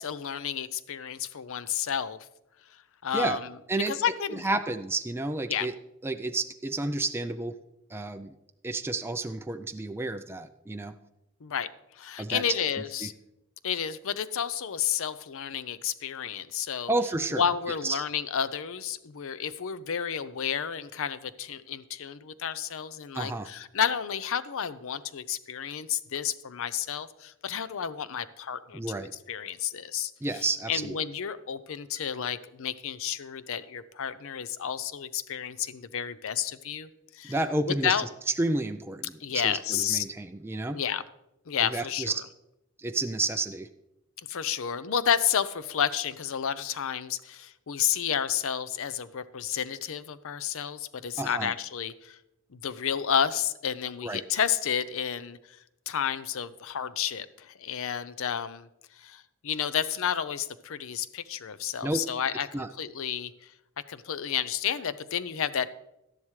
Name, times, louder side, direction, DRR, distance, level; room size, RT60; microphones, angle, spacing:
voice 1, 0.0-2.2 3.0-3.4 3.9-4.5 5.5-5.7 11.4-11.7 12.0-13.1 13.6-16.9 17.3-30.1 30.7-36.9 37.1-37.3 37.8-38.0 39.2-40.1 40.7-41.0 41.5-42.1 44.3-52.2 52.5-55.4 55.9-58.7 59.0-63.3 63.9-65.7, left 8 dB, 65° left, 15 dB, 0.5 m, -31 dB
voice 2, 3.7-5.7 6.0-7.5 7.9-8.3 8.6-10.9 12.2-12.6 13.0-13.1 16.9-17.4 17.8-18.0 23.1-23.5 28.7-29.1 30.2-31.0 37.2-38.0 38.4-40.8 41.6-42.2 42.8-43.7 51.2-51.5 54.0-54.2 61.8-62.0 62.5-62.7, right 2 dB, 10° right, 7 dB, 0.3 m, -31 dB
12.5 x 10.5 x 3.2 m, 0.89 s
head